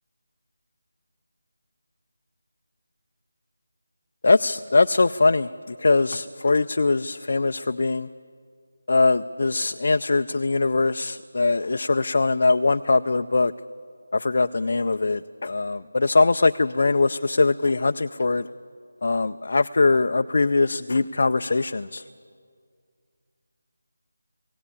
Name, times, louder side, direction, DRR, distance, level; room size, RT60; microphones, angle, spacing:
voice 1, 4.2-8.1 8.9-13.5 14.1-18.5 19.0-22.0, left 3 dB, 55° left, 8 dB, 0.4 m, -22 dB
19.0 x 17.0 x 8.4 m, 2.1 s
figure-of-eight pair, 175°, 0 cm